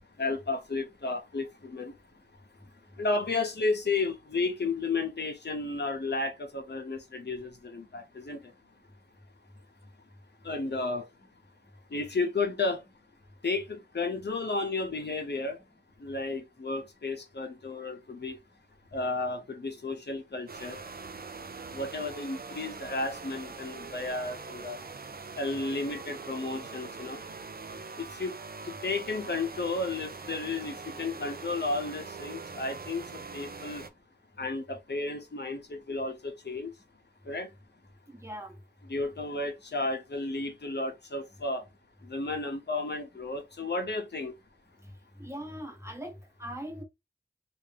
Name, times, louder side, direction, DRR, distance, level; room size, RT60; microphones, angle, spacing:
voice 1, 0.2-1.9 3.0-8.4 10.4-11.1 11.9-12.8 13.4-15.6 16.0-18.4 18.9-20.8 21.7-24.8 25.4-27.2 28.0-28.3 28.6-33.8 34.4-36.7 37.3-37.5 38.8-41.6 42.0-44.3, left 3 dB, 70° left, 0.8 m, -33 dB
sound 1, 20.5-33.9, right 4 dB, 55° right, 0.5 m, -43 dB
voice 2, 38.1-38.6 44.8-44.9 45.2-46.8, equal, 15° right, 1.1 m, -41 dB
3.4 x 2.6 x 3.3 m
wide cardioid pair, 75°, 18 cm